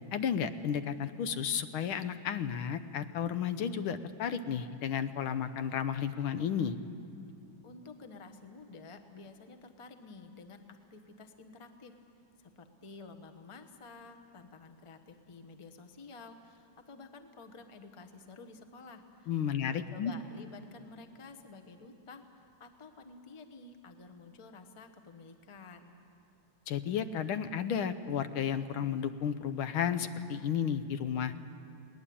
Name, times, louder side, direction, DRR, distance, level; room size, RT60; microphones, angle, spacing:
voice 1, 0.1-6.8 19.3-20.1 26.7-31.3, left 8 dB, 85° left, 11 dB, 1.7 m, -33 dB
voice 2, 7.6-10.6 10.9-11.9 12.4-19.3 19.6-22.2 22.6-26.0, left 3 dB, 20° left, 7 dB, 0.8 m, -51 dB
21.5 x 18.5 x 8.6 m, 2.5 s
omnidirectional pair, 2.2 m